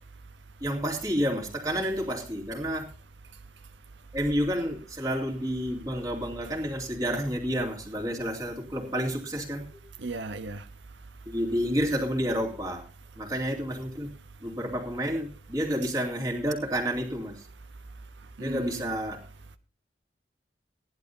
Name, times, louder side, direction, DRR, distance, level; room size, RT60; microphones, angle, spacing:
voice 1, 0.6-2.9 4.1-9.6 11.3-12.9 13.2-14.1 14.4-17.4 18.4-19.2, equal, 20° right, 2.6 m, -30 dB
voice 2, 10.0-11.1 17.7-18.9, right 3 dB, 85° right, 0.8 m, -38 dB
18.0 x 11.0 x 2.7 m
head